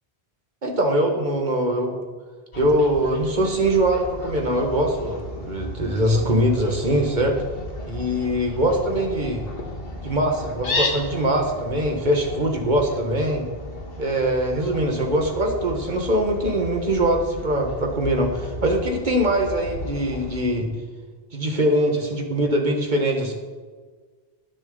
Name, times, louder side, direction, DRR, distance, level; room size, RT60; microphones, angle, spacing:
voice 1, 0.6-2.0 2.6-7.4 7.8-9.5 10.0-13.5 14.0-20.7 21.3-23.3, right 1 dB, 45° right, 2 dB, 1.8 m, -22 dB
Fowl, 2.5-20.4, left 1 dB, 65° left, 1.8 m, -34 dB
20.0 x 6.8 x 4.0 m, 1.5 s
omnidirectional pair, 1.0 m